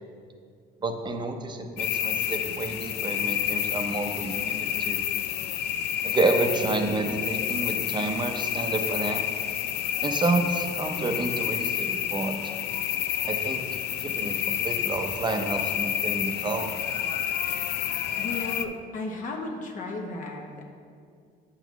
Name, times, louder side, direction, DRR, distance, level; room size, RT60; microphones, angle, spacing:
voice 1, 0.8-5.0 6.0-9.2 10.0-12.5 13.3-13.6 14.0-16.7, right 3 dB, 25° right, 5 dB, 0.6 m, -29 dB
sound 1, 1.8-18.7, left 9 dB, 80° left, 0.4 m, -29 dB
voice 2, 18.2-20.6, left 2 dB, 50° left, 0 dB, 0.9 m, -34 dB
8.1 x 6.0 x 3.0 m, 2.2 s
cardioid pair, 110°, 17 cm